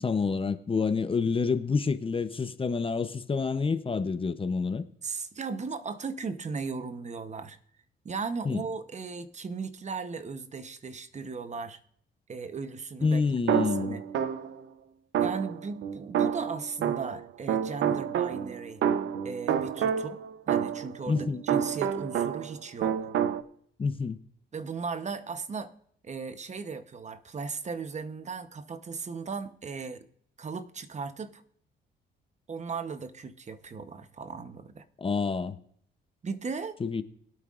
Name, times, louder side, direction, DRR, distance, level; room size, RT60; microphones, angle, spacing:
voice 1, 0.0-4.9 8.4-8.6 13.0-14.0 21.1-21.4 23.8-24.2 35.0-35.6 36.8-37.0, left 4 dB, 25° left, 0.7 m, -28 dB
voice 2, 5.0-7.6 8.0-11.8 12.3-13.2 13.6-14.0 15.2-18.8 19.2-20.2 20.5-23.0 24.5-25.7 26.0-30.1 30.4-31.4 32.5-34.8 36.2-36.8, right 5 dB, 35° right, 0.9 m, -37 dB
sound 1, 13.5-14.6 15.1-17.2 17.5-22.6 22.8-23.4, right 8 dB, 70° right, 0.7 m, -28 dB
22.0 x 8.5 x 2.5 m
cardioid pair, 90°, 20 cm